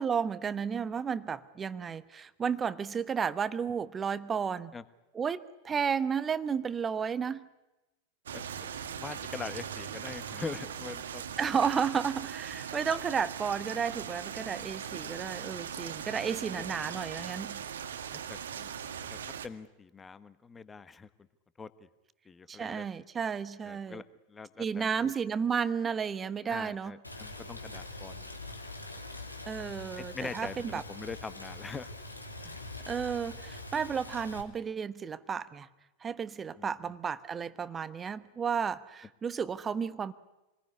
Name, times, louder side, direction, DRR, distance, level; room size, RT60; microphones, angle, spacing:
voice 1, 0.0-4.7 5.1-7.4 11.4-17.6 22.5-24.0 24.6-27.0 29.5-30.8 32.9-35.7 36.0-40.1, right 6 dB, 20° right, 15 dB, 1.1 m, -32 dB
voice 2, 8.3-11.3 11.6-11.7 16.2-16.7 18.1-18.7 19.1-21.1 21.6-21.9 22.2-22.8 23.6-25.1 26.5-28.4 30.0-31.9 32.4-32.6 36.6-36.9, left 4 dB, 15° left, 15 dB, 1.3 m, -43 dB
sound 1, 8.3-19.5, right 8 dB, 65° right, 1.7 m, -40 dB
Rain, 27.0-34.4, left 2 dB, 85° left, 3.1 m, -44 dB
27.0 x 21.0 x 9.7 m, 1.0 s
figure-of-eight pair, 90°, 0 cm